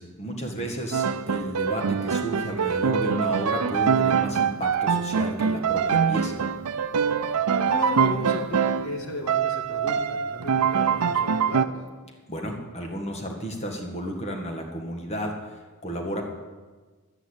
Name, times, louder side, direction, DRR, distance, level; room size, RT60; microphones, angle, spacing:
voice 1, 0.0-6.4 12.3-15.3 15.8-16.2, equal, 30° left, 2 dB, 1.9 m, -32 dB
voice 2, 0.5-0.9 7.5-11.7, left 1 dB, 65° left, 2 dB, 2.4 m, -35 dB
Piano, 0.9-9.0 9.3-11.7, right 7 dB, 85° right, 0.5 m, -24 dB
11.5 x 9.5 x 8.2 m, 1.3 s
head